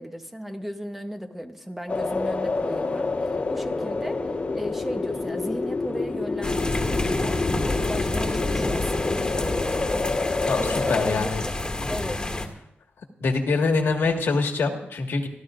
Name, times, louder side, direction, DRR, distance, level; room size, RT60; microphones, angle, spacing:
voice 1, 0.0-3.1 3.5-9.6 10.6-11.6 11.9-12.3, equal, 5° right, 5 dB, 0.9 m, -36 dB
sound 1, 1.9-11.1, left 3 dB, 40° left, 1.5 m, -28 dB
sound 2, 6.4-12.5, left 2 dB, 20° left, 1.8 m, -28 dB
voice 2, 10.5-11.4 13.2-15.3, left 4 dB, 80° left, 3 dB, 1.8 m, -24 dB
28.0 x 12.5 x 2.6 m, 0.77 s
wide cardioid pair, 125°, 4 cm